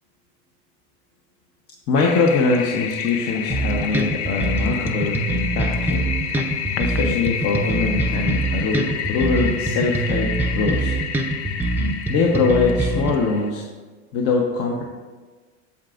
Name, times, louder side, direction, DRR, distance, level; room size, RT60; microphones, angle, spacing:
voice 1, 1.9-6.1 6.8-10.9 12.1-13.7 14.1-14.8, left 4 dB, 45° left, 0 dB, 0.9 m, -22 dB
Toilet flush, 2.0-13.5, left 7 dB, 70° left, 0.7 m, -30 dB
sound 1, 3.5-13.1, right 2 dB, 5° right, 0.6 m, -24 dB
8.5 x 6.9 x 2.5 m, 1.4 s
supercardioid pair, 115°, 34 cm